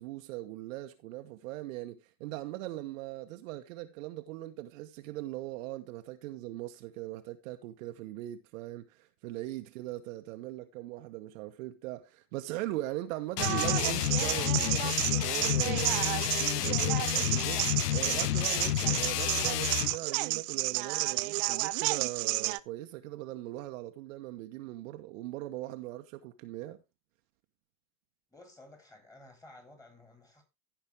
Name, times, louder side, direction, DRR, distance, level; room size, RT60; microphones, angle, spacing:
voice 1, 0.0-26.8, right 16 dB, 55° right, 1.2 m, -40 dB
sound 1, 13.4-20.0, left 13 dB, 85° left, 0.6 m, -30 dB
sound 2, 13.4-22.6, right 23 dB, 40° right, 0.5 m, -31 dB
voice 2, 28.3-30.4, left 2 dB, 5° left, 3.2 m, -54 dB
15.0 x 5.4 x 3.4 m
hypercardioid pair, 95°, 46 cm